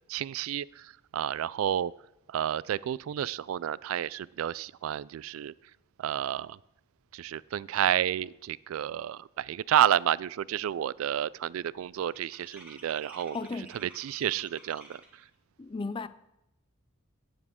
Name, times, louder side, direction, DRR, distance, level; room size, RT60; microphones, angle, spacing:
voice 1, 0.1-1.9 2.3-5.5 6.0-6.6 7.1-15.3, right 10 dB, 85° right, 0.3 m, -30 dB
sound 1, 11.3-15.3, right 2 dB, 5° right, 1.9 m, -53 dB
voice 2, 13.3-13.7 15.6-16.1, left 3 dB, 25° left, 0.4 m, -35 dB
16.5 x 7.2 x 3.6 m
head